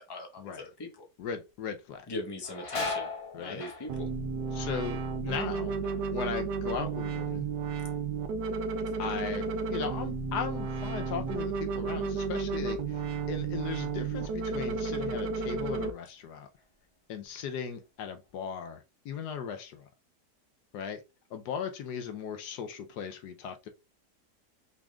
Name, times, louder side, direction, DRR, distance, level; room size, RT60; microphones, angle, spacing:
voice 1, 0.0-1.0 2.1-3.1 3.4-4.1, left 2 dB, 15° left, 1.0 m, -40 dB
voice 2, 1.2-2.1 3.3-3.6 4.5-5.8 6.1-7.4 9.0-16.5 17.1-19.9 20.7-21.0 21.3-23.7, left 7 dB, 75° left, 1.2 m, -38 dB
sound 1, 1.5-1.6 1.9-7.5 7.8-8.4 8.9-11.8 12.2-12.3 13.3-13.5 13.9-15.0 15.5-15.6 16.2-16.9 17.2-18.4, left 3 dB, 50° left, 0.3 m, -42 dB
sound 2, 3.9-15.9, right 4 dB, 80° right, 1.4 m, -32 dB
6.0 x 3.6 x 2.3 m
omnidirectional pair, 1.8 m